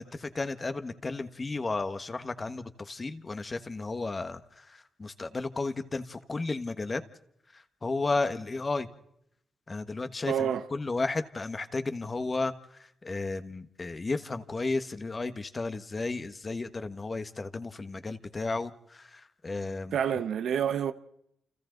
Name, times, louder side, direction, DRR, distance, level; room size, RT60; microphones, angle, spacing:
voice 1, 0.0-7.0 7.8-8.9 9.7-12.5 13.0-20.0, left 3 dB, 30° left, 1.4 m, -33 dB
voice 2, 10.3-10.7 19.9-20.9, right 8 dB, 80° right, 1.2 m, -28 dB
29.0 x 29.0 x 4.0 m
cardioid pair, 105°, 0 cm